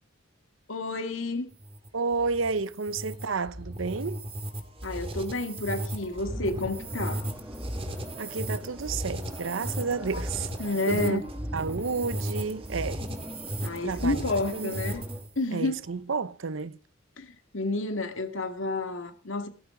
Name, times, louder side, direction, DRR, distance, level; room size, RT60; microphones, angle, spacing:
voice 1, 0.7-1.5 4.8-7.3 10.1-10.2 10.6-11.2 13.6-15.0 15.4-15.8 17.2-19.5, left 2 dB, 75° left, 2.1 m, -30 dB
sound 1, 1.5-15.4, right 1 dB, 30° right, 2.4 m, -35 dB
voice 2, 1.9-4.3 8.2-10.5 10.9-11.2 11.5-13.0 13.8-14.2 14.5-14.7 15.5-16.8, right 4 dB, 75° right, 0.7 m, -31 dB
sound 2, 6.3-15.2, equal, 10° right, 2.0 m, -44 dB
16.5 x 14.0 x 3.8 m
head